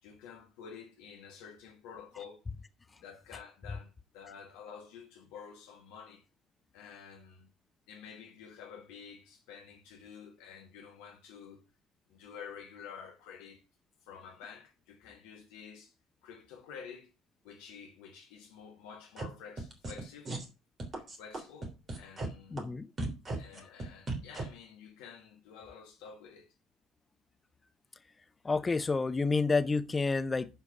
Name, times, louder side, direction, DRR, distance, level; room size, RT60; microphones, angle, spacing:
voice 1, 0.0-2.4 2.9-6.2 6.7-7.5 7.9-11.6 12.1-13.6 14.0-15.9 16.2-17.1 17.4-20.3 20.9-22.6 23.3-26.5, left 7 dB, 65° left, 1.6 m, -50 dB
sound 1, 19.2-19.3 19.6-20.0 20.3-20.5 20.8-22.3 22.6-22.7 23.0-24.4, right 2 dB, 30° right, 3.2 m, -36 dB
voice 2, 22.5-22.9 28.4-30.5, left 4 dB, 20° left, 0.9 m, -29 dB
11.5 x 4.9 x 5.7 m
figure-of-eight pair, 60°, 0 cm